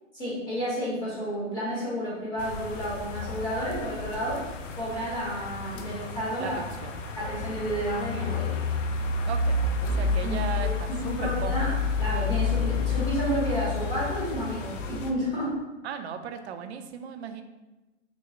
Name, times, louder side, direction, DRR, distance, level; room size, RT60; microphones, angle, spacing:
voice 1, 0.1-4.4 4.7-6.6 7.2-8.5 9.8-11.7 12.0-15.5, equal, 10° left, -9 dB, 0.8 m, -31 dB
sound 1, 2.4-15.1, left 4 dB, 75° left, 0.6 m, -30 dB
voice 2, 6.4-7.0 9.3-11.8 15.8-17.4, right 7 dB, 60° right, 7 dB, 0.5 m, -37 dB
5.9 x 2.0 x 2.4 m, 1.1 s
hypercardioid pair, 140°, 38 cm